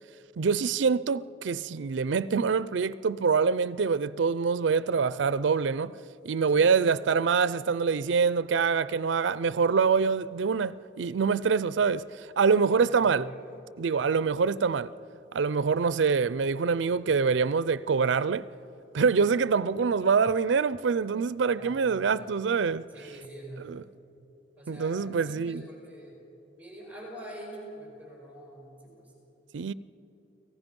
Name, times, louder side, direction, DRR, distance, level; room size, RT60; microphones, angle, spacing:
voice 1, 0.4-6.0 6.2-12.1 12.4-13.3 13.8-14.9 15.3-18.5 18.9-22.8 23.7-23.8 24.7-25.7 29.5-29.7, right 5 dB, 80° right, 0.5 m, -25 dB
voice 2, 6.5-6.8 12.6-13.6 21.5-22.3 22.9-23.8 24.6-26.2 26.5-29.1, right 1 dB, 10° right, 5.2 m, -45 dB
29.5 x 17.5 x 5.3 m
head